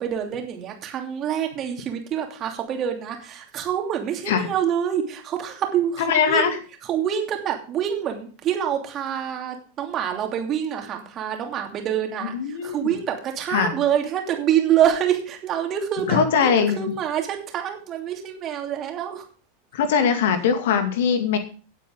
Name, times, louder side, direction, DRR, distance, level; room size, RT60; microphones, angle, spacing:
voice 1, 0.0-6.5 6.9-19.2, right 9 dB, 30° right, 3 dB, 2.8 m, -26 dB
voice 2, 6.0-6.5 12.3-12.9 13.5-13.8 16.1-16.9 19.7-21.4, left 7 dB, 55° left, 8 dB, 2.3 m, -21 dB
17.0 x 8.4 x 3.8 m, 0.40 s
figure-of-eight pair, 90°, 0 cm